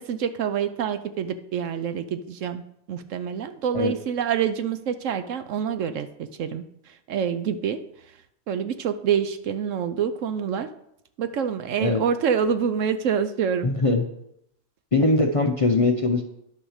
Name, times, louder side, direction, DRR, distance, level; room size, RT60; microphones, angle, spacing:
voice 1, 0.0-2.6 2.9-7.8 8.5-10.7 11.2-13.7, right 7 dB, 70° right, 11 dB, 1.0 m, -26 dB
voice 2, 13.6-14.0 14.9-16.2, left 3 dB, 30° left, 3 dB, 0.7 m, -21 dB
11.0 x 6.1 x 6.5 m, 0.77 s
omnidirectional pair, 1.5 m